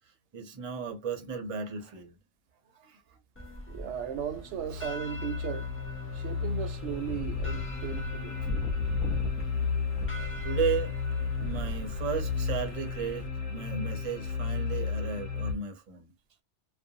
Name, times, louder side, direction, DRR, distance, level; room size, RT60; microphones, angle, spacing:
voice 1, 0.3-2.2 2.7-3.2 4.7-4.9 10.4-10.9 11.4-16.1, right 6 dB, 35° right, 0.6 m, -34 dB
sound 1, 3.4-13.3, equal, 15° left, 0.4 m, -40 dB
voice 2, 3.7-5.7 6.1-8.4, right 9 dB, 70° right, 0.8 m, -36 dB
sound 2, 4.2-15.5, left 5 dB, 35° left, 1.1 m, -33 dB
2.5 x 2.1 x 2.6 m
omnidirectional pair, 1.2 m